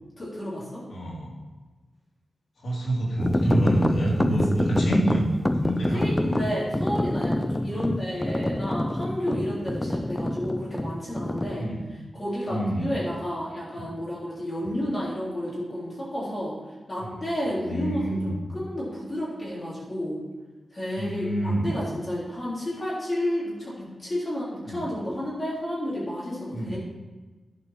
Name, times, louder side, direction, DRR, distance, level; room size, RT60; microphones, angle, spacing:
voice 1, 0.2-0.8 5.9-11.6 12.1-16.5 16.9-20.2 20.7-26.8, equal, 30° left, -7 dB, 3.6 m, -31 dB
voice 2, 0.9-1.3 2.6-6.4 7.7-7.9 9.3-9.5 11.6-11.8 12.5-13.0 13.8-13.9 14.6-14.7 17.0-17.2 17.7-18.3 20.9-21.8 24.6-24.9 26.5-26.8, right 1 dB, 65° left, -5 dB, 3.3 m, -27 dB
sound 1, 3.2-11.6, left 1 dB, 10° left, 0.4 m, -26 dB
11.5 x 5.9 x 6.0 m, 1.2 s
wide cardioid pair, 170°, 0 cm